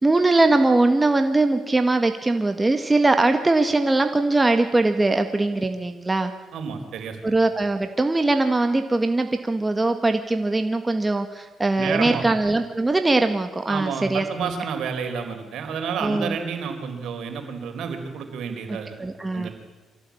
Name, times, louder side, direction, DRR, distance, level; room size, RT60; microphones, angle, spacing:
voice 1, 0.0-6.3 7.2-14.6 16.0-16.4 19.0-19.5, right 2 dB, 20° right, 6 dB, 1.9 m, -21 dB
voice 2, 6.5-7.3 11.8-12.2 13.7-19.0 19.3-19.5, right 6 dB, 75° right, 6 dB, 4.2 m, -30 dB
24.5 x 16.0 x 8.7 m, 1.2 s
cardioid pair, 90°, 0 cm